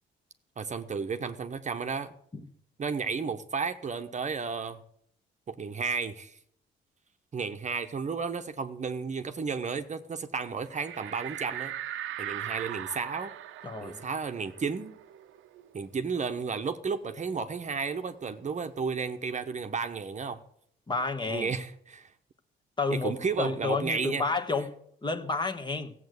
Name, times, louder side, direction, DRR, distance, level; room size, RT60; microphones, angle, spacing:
voice 1, 0.6-2.1 2.8-4.8 5.5-6.4 7.3-11.7 12.2-13.3 13.8-14.9 15.7-20.4 21.2-22.1 22.9-24.2, right 5 dB, 35° right, 1.0 m, -33 dB
sound 1, 10.7-15.9 16.3-16.4 16.7-18.4, right 12 dB, 85° right, 0.8 m, -40 dB
voice 2, 13.6-14.0 20.9-21.5 22.8-24.7 25.0-25.9, left 3 dB, 20° left, 1.3 m, -30 dB
14.5 x 7.8 x 8.0 m
cardioid pair, 90°, 20 cm